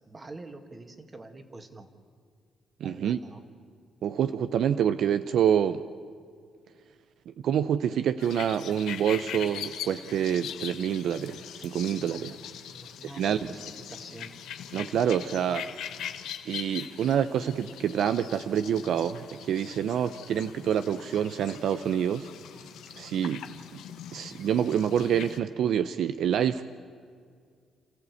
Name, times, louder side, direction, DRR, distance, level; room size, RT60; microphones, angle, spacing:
voice 1, 0.1-1.9 2.8-3.4 12.7-14.3, right 2 dB, 30° right, 7 dB, 2.0 m, -45 dB
voice 2, 2.8-3.2 4.0-5.8 7.3-12.3 13.2-13.4 14.7-15.7 16.4-22.3 23.0-23.4 24.1-26.6, right 9 dB, 70° right, 11 dB, 0.6 m, -27 dB
sound 1, 8.2-25.4, left 9 dB, 85° left, 1.2 m, -41 dB
29.0 x 14.5 x 8.3 m, 2.1 s
cardioid pair, 90°, 0 cm